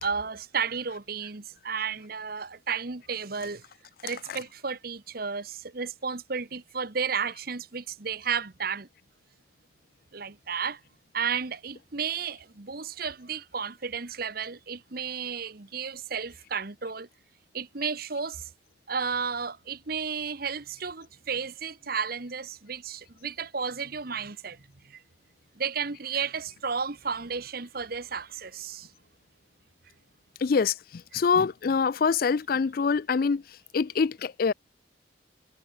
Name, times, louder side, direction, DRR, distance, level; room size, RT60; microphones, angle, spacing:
voice 1, 0.0-3.6 4.0-8.9 10.1-10.8 11.1-17.1 17.5-18.5 18.9-24.6 24.8-25.0 25.5-28.9, right 6 dB, 50° right, 1.1 m, -33 dB
voice 2, 4.1-4.4 30.4-30.7 31.1-33.4 33.7-34.5, left 5 dB, 50° left, 0.4 m, -25 dB
head